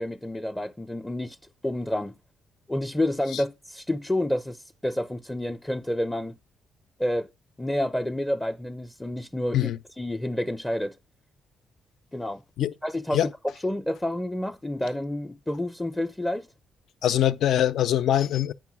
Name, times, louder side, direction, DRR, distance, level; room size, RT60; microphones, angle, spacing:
voice 1, 0.0-1.4 1.6-2.1 2.7-6.4 7.0-7.3 7.6-11.0 12.1-12.4 12.8-13.3 13.6-16.5, left 1 dB, 10° left, 0.5 m, -29 dB
voice 2, 17.0-18.5, left 11 dB, 75° left, 0.5 m, -23 dB
9.2 x 5.6 x 6.0 m
cardioid pair, 90°, 0 cm